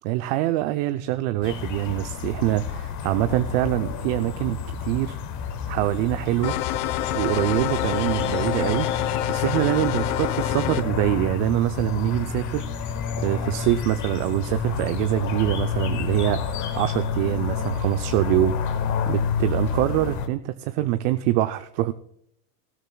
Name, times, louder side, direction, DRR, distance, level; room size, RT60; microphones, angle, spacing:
voice 1, 0.0-5.2 5.7-6.6 7.1-8.9 9.3-21.9, right 15 dB, 55° right, 0.6 m, -25 dB
sound 1, 1.4-20.3, left 6 dB, 40° left, 1.6 m, -29 dB
sound 2, 6.4-10.8, left 13 dB, 65° left, 1.0 m, -27 dB
19.0 x 13.0 x 2.3 m
supercardioid pair, 120°, 45 cm